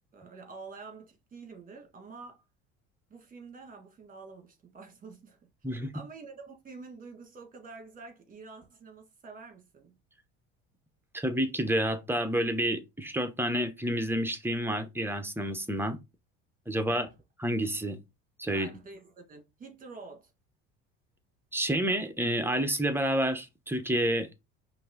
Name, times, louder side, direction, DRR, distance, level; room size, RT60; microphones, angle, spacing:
voice 1, 0.0-2.4 3.1-5.5 5.9-10.0 16.9-17.1 18.5-20.3, right 4 dB, 25° right, 1.6 m, -48 dB
voice 2, 11.1-16.0 16.7-17.1 17.4-18.0 18.4-18.7 21.5-24.3, right 1 dB, 5° right, 0.8 m, -29 dB
5.3 x 2.7 x 3.7 m
supercardioid pair, 100°, 31 cm